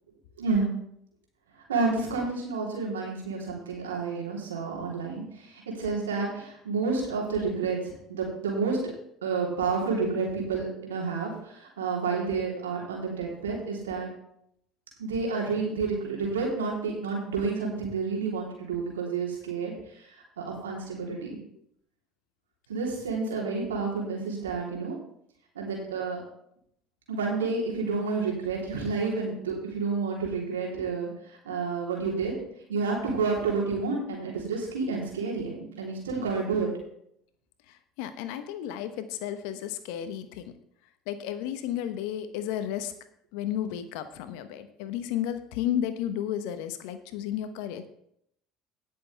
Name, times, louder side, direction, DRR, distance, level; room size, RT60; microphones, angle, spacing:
voice 1, 0.4-0.7 1.7-8.9 9.2-14.1 15.0-21.4 22.7-25.0 25.5-26.2 27.1-32.3 32.7-36.7, right 4 dB, 85° right, -3 dB, 3.3 m, -30 dB
voice 2, 37.7-40.5 41.1-42.9 43.3-47.9, left 10 dB, 70° left, 10 dB, 1.0 m, -33 dB
18.0 x 6.8 x 3.4 m, 0.73 s
hypercardioid pair, 65°, 0 cm